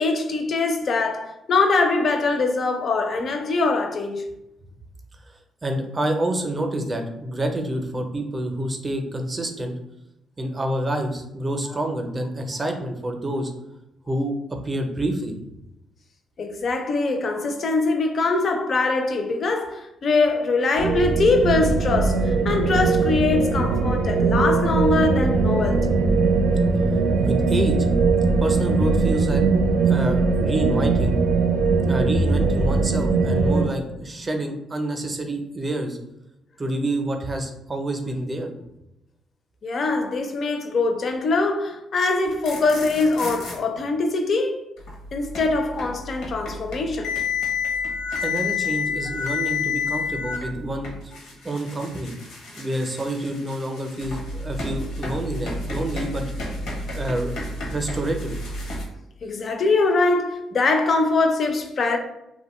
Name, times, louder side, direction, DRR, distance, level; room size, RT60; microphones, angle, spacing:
voice 1, 0.0-4.2 16.4-25.9 39.6-44.6 45.1-47.1 59.2-62.0, left 3 dB, 50° left, 0.4 m, -22 dB
voice 2, 5.6-9.7 10.4-13.5 14.1-14.4 14.6-15.4 27.2-27.8 28.4-29.4 29.9-31.1 31.8-36.0 36.6-38.5 48.2-50.9 51.4-52.1 52.6-56.2 56.9-57.4 57.7-58.3, right 1 dB, 25° right, 0.5 m, -27 dB
sound 1, 20.8-33.7, right 4 dB, 90° right, 0.3 m, -20 dB
sound 2, 42.3-43.6 44.8-58.8, left 4 dB, 80° left, 0.7 m, -30 dB
2.6 x 2.1 x 3.0 m
cardioid pair, 90°, 0 cm